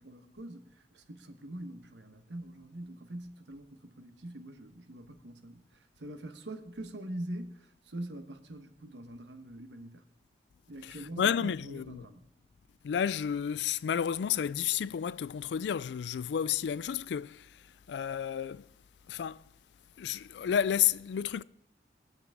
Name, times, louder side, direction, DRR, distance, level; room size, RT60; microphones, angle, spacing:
voice 1, 0.0-10.0 10.7-12.2, right 1 dB, 90° right, 1.2 m, -44 dB
voice 2, 10.8-12.1 12.8-18.7 19.1-19.4 20.0-21.4, left 8 dB, 80° left, 0.3 m, -31 dB
22.0 x 8.1 x 3.6 m
head